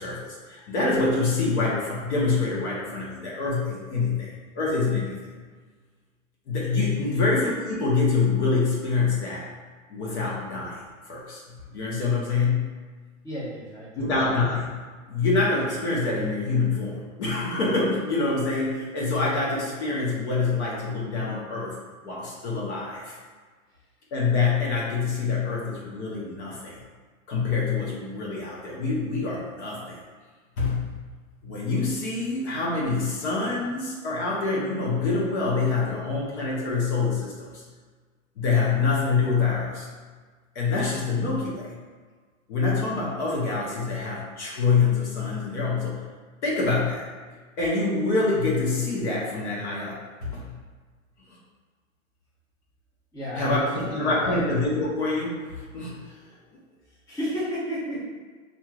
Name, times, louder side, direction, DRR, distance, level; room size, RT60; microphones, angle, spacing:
voice 1, 0.0-5.2 6.5-9.5 9.9-11.4 11.7-12.7 14.0-14.8 15.1-21.8 22.0-23.2 24.1-26.8 27.3-30.0 30.6-31.0 31.4-37.6 38.4-39.9 40.5-41.7 42.5-46.0 46.4-47.1 47.6-50.6 53.4-56.2, left 4 dB, 50° left, -5 dB, 1.2 m, -26 dB
voice 2, 13.2-14.1 53.1-54.4 57.1-58.0, equal, 10° left, -10 dB, 0.9 m, -33 dB
4.3 x 2.8 x 2.4 m, 1.5 s
hypercardioid pair, 140°, 43 cm